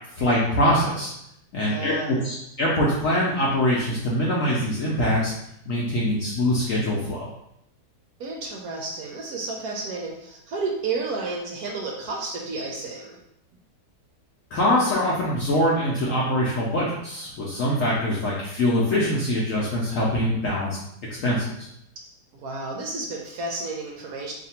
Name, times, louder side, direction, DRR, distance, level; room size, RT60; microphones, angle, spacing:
voice 1, 0.2-1.1 1.5-5.3 5.7-7.3 14.5-20.8 21.1-21.5, left 1 dB, 65° left, -5 dB, 0.8 m, -23 dB
voice 2, 1.6-2.3 8.2-13.2 22.3-24.3, right 3 dB, 70° right, 0 dB, 0.9 m, -31 dB
2.8 x 2.5 x 4.2 m, 0.78 s
omnidirectional pair, 1.9 m